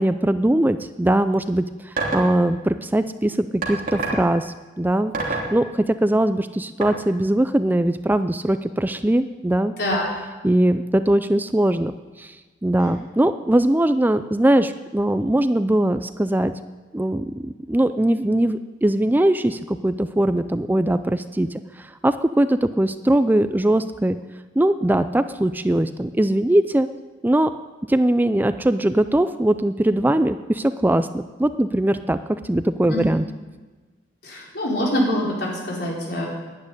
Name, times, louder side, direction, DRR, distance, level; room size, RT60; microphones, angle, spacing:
voice 1, 0.0-9.7 10.4-11.9 12.2-12.4 12.6-16.5 16.9-21.5 21.8-24.2 24.6-26.9 27.2-27.5 27.9-32.2 32.4-33.2, right 1 dB, 10° right, 11 dB, 0.4 m, -21 dB
sound 1, 2.0-2.3 3.6-4.3 5.1-5.5 6.8-6.9, right 3 dB, 50° right, 3.2 m, -25 dB
voice 2, 34.2-36.3, equal, 65° left, -3 dB, 5.1 m, -24 dB
11.5 x 10.5 x 9.8 m, 1.3 s
head